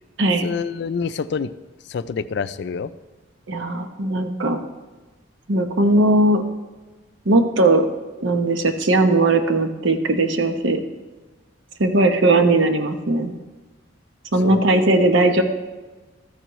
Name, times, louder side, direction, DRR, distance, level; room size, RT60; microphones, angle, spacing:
voice 1, 0.4-1.5 1.9-2.9 14.4-14.6, left 5 dB, 55° left, 14 dB, 0.3 m, -26 dB
voice 2, 3.5-4.6 5.5-6.4 7.3-7.9 8.2-10.8 11.8-13.3 14.3-15.4, right 2 dB, 65° right, 6 dB, 0.8 m, -18 dB
13.0 x 9.2 x 3.0 m, 1.2 s
head